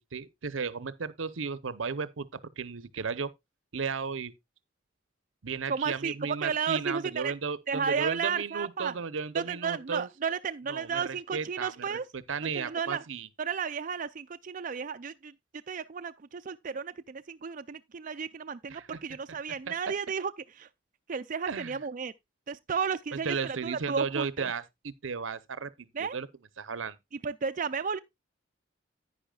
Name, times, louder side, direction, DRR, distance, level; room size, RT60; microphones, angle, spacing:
voice 1, 0.1-3.3 3.7-4.3 5.4-10.1 10.7-13.3 18.7-18.9 21.5-21.8 23.1-26.3 26.6-27.0, right 5 dB, 90° right, 0.8 m, -34 dB
voice 2, 5.7-7.3 7.7-8.9 9.3-12.0 12.5-13.0 13.4-15.3 15.7-20.3 20.6-20.7 21.1-22.1 22.5-24.5 25.9-26.2 27.2-28.0, right 6 dB, 45° right, 0.4 m, -33 dB
10.0 x 9.7 x 2.3 m
head